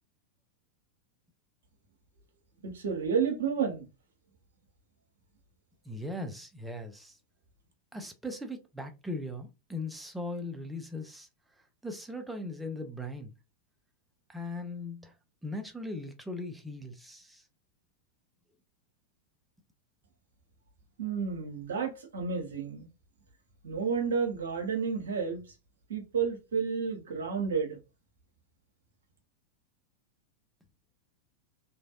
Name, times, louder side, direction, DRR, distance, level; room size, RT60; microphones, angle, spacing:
voice 1, 2.6-3.9 21.0-22.9 23.6-25.4 25.9-27.8, right 6 dB, 65° right, 0.9 m, -31 dB
voice 2, 5.9-7.2 7.9-11.3 11.8-13.3 14.3-15.1 15.4-17.4, left 1 dB, 5° right, 0.6 m, -39 dB
3.0 x 2.5 x 2.4 m
figure-of-eight pair, 90°, 0 cm